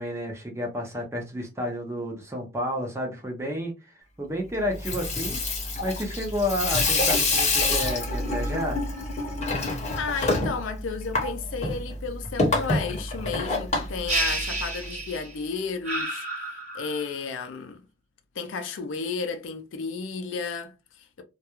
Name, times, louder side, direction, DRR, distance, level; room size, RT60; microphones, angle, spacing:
voice 1, 0.0-5.4 5.8-8.8, left 1 dB, 15° right, 0.6 m, -31 dB
Water tap faucet / Sink (filling or washing), 4.7-14.9, left 2 dB, 35° left, 0.8 m, -27 dB
voice 2, 10.0-16.3 16.7-17.8 18.4-21.2, left 5 dB, 70° left, 0.4 m, -33 dB
sound 1, 14.1-15.4 15.8-17.1, right 2 dB, 35° right, 1.0 m, -30 dB
2.3 x 2.2 x 2.9 m
head